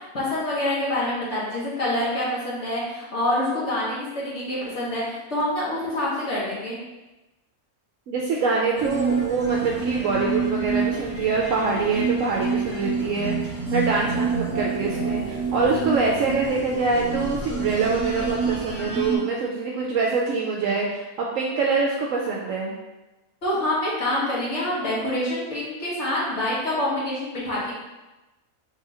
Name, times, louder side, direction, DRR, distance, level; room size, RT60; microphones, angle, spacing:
voice 1, 0.1-6.8 23.4-27.8, left 1 dB, 55° left, -8 dB, 1.6 m, -26 dB
voice 2, 8.1-22.7, right 4 dB, 70° right, -2 dB, 0.9 m, -25 dB
sound 1, 8.8-19.2, right 4 dB, 10° right, 1.0 m, -27 dB
3.9 x 2.8 x 4.7 m, 1.1 s
omnidirectional pair, 1.5 m